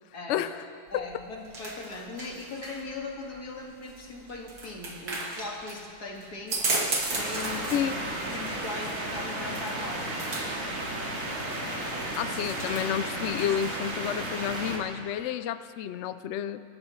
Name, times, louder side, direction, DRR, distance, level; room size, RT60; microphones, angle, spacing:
voice 1, 0.3-0.7 0.9-1.0 7.7-8.0 12.2-16.6, left 10 dB, 70° left, 12 dB, 0.7 m, -30 dB
voice 2, 0.9-6.6 7.1-7.9 8.3-10.5 11.2-12.4, left 3 dB, 85° left, -2 dB, 2.5 m, -40 dB
sound 1, 0.9-13.9, right 3 dB, 90° right, 2.3 m, -36 dB
sound 2, 7.1-14.8, right 1 dB, 60° right, 2.3 m, -33 dB
26.0 x 13.5 x 3.1 m, 2.3 s
omnidirectional pair, 1.6 m